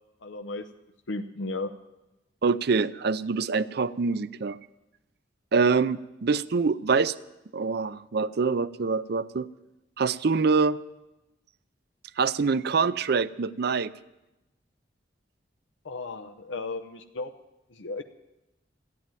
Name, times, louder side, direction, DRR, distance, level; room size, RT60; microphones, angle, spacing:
voice 1, 0.2-0.7 1.1-1.7 15.8-17.3 17.7-18.0, left 3 dB, 85° left, 7 dB, 0.7 m, -34 dB
voice 2, 2.4-4.6 5.5-7.1 7.5-9.5 10.0-10.8 12.2-13.9, right 4 dB, 60° right, 16 dB, 0.5 m, -25 dB
14.5 x 10.5 x 9.0 m, 0.98 s
head